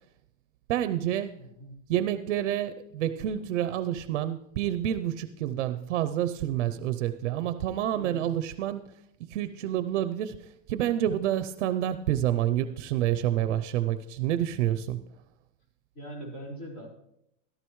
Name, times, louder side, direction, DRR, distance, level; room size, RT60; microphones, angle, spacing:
voice 1, 0.7-1.3 1.9-8.8 9.2-10.4 10.7-15.0, right 11 dB, 70° right, 11 dB, 0.7 m, -28 dB
voice 2, 1.4-1.8 7.9-8.3 15.9-16.9, right 1 dB, 35° left, -3 dB, 4.7 m, -41 dB
14.5 x 13.0 x 3.1 m, 0.78 s
supercardioid pair, 175°, 37 cm